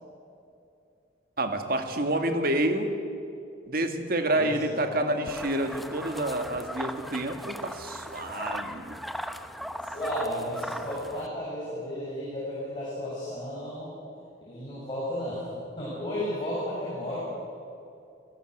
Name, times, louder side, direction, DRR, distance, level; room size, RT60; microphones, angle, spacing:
voice 1, 1.4-2.9 3.7-9.0, right 1 dB, 55° right, 6 dB, 2.1 m, -28 dB
voice 2, 4.3-4.6 4.9-5.1 9.8-14.0 14.5-15.5 15.8-17.2, equal, 25° left, -7 dB, 7.1 m, -33 dB
sound 1, 5.3-11.3, equal, ahead, 0.8 m, -38 dB
27.5 x 17.0 x 8.0 m, 2.6 s
head